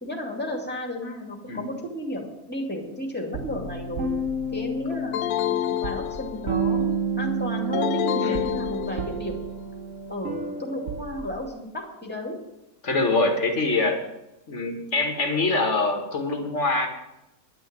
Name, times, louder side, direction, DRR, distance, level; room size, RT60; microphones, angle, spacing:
voice 1, 0.0-4.1 4.5-9.4 10.1-12.4, left 1 dB, 5° left, 0 dB, 2.3 m, -33 dB
sound 1, 3.3-11.5, right 3 dB, 50° right, 1.2 m, -30 dB
sound 2, 5.1-6.7 7.7-9.3, left 12 dB, 85° left, 1.2 m, -28 dB
voice 2, 12.8-14.0 14.5-16.9, left 3 dB, 45° left, 3 dB, 2.0 m, -24 dB
11.0 x 6.4 x 8.8 m, 0.90 s
omnidirectional pair, 1.8 m